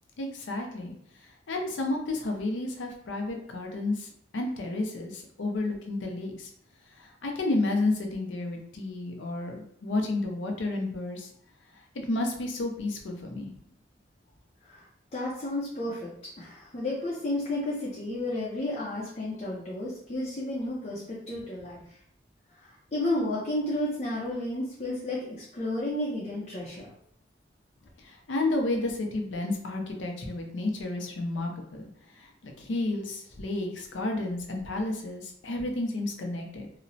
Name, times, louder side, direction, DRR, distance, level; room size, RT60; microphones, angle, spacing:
voice 1, 0.2-0.9 1.2-6.5 7.0-11.3 11.9-13.5 26.7-26.9 28.0-31.9 32.1-36.7, left 2 dB, 90° left, 2 dB, 0.5 m, -31 dB
voice 2, 15.1-16.1 16.4-21.8 22.6-25.3 25.5-26.9, left 1 dB, 40° left, -6 dB, 0.5 m, -32 dB
2.9 x 2.0 x 2.6 m, 0.67 s
head